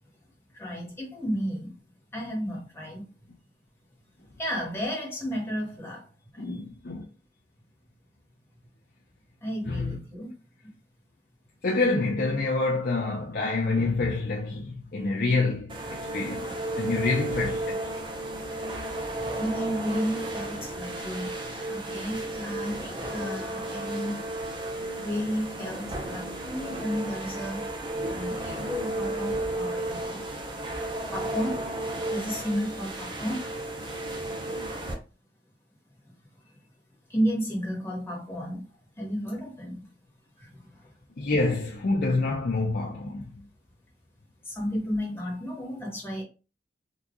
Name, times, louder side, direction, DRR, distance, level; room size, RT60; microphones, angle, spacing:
voice 1, 0.6-1.8 2.1-3.1 4.4-6.1 6.3-6.7 9.4-10.3 19.4-24.2 25.0-27.7 28.1-30.2 31.1-31.6 32.1-33.4 37.1-38.6 39.0-39.9 40.4-40.9 44.4-46.2, equal, 15° left, 1.5 m, -32 dB
voice 2, 6.4-7.0 9.7-10.0 11.6-17.9 41.2-43.3, left 3 dB, 55° left, 0.5 m, -27 dB
sound 1, 15.7-34.9, right 1 dB, 30° right, 0.7 m, -33 dB
3.8 x 2.9 x 2.3 m
head